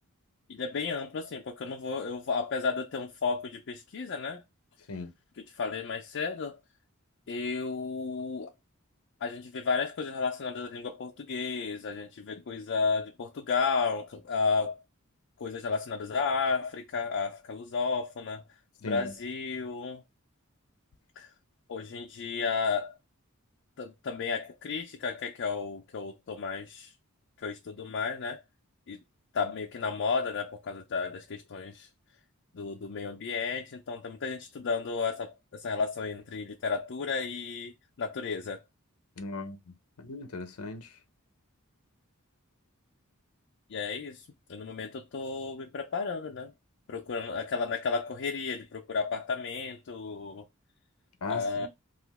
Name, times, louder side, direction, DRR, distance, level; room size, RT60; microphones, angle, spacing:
voice 1, 0.5-4.4 5.5-6.6 7.3-8.5 9.2-14.8 15.4-18.4 18.8-20.0 21.2-21.3 21.7-22.9 23.8-26.9 27.4-28.4 28.9-29.0 29.3-31.9 32.5-37.7 38.0-38.6 43.7-46.5 46.9-50.4 51.3-51.7, left 5 dB, 55° left, 0.5 m, -33 dB
voice 2, 18.8-19.1 39.2-39.6 40.0-40.9 51.2-51.7, left 3 dB, 90° left, 0.7 m, -37 dB
2.9 x 2.4 x 3.4 m
head